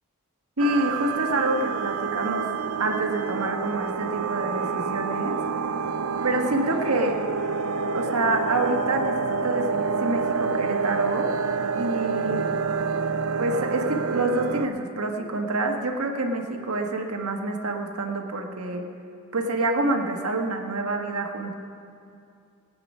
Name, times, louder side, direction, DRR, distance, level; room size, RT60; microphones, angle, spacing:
sound 1, 0.6-14.7, right 5 dB, 70° right, 0.5 m, -28 dB
voice 1, 0.6-2.5 2.8-5.4 6.2-7.2 7.9-11.3 11.7-12.5 13.4-18.8 19.3-21.5, right 2 dB, 85° right, 3 dB, 1.3 m, -27 dB
19.0 x 8.7 x 5.4 m, 2.4 s
head